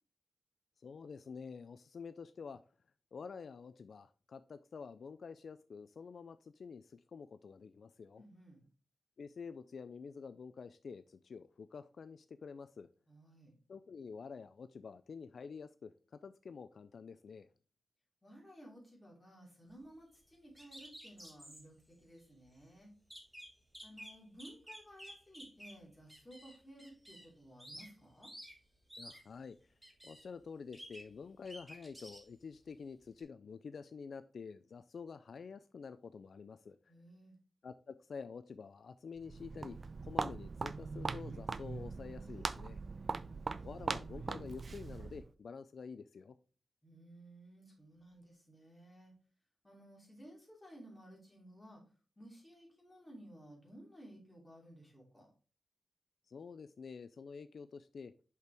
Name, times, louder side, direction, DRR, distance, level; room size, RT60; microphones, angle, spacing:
voice 1, 0.8-2.6 3.1-8.2 9.2-12.9 13.7-17.5 29.0-29.7 30.0-36.9 37.6-42.8 43.6-46.4 56.3-58.1, left 5 dB, 65° left, 12 dB, 0.3 m, -49 dB
voice 2, 8.2-8.7 13.1-13.5 18.2-22.9 23.8-28.3 36.9-37.3 43.1-43.4 46.8-49.1 49.6-51.8 52.2-55.3, right 1 dB, 15° left, -3 dB, 2.8 m, -56 dB
sound 1, 20.6-21.6 22.2-22.3 22.6-22.7 23.1-25.8 26.1-27.3 27.6-27.9 28.2-28.6 28.9-29.2 29.8-30.3 30.7-31.2 31.5-32.2 33.2-33.3, equal, 5° right, 1.5 m, -52 dB
Walk footsteps, 39.2-45.3, right 4 dB, 45° right, 0.3 m, -41 dB
6.0 x 5.6 x 3.4 m, 0.36 s
wide cardioid pair, 140°, 0 cm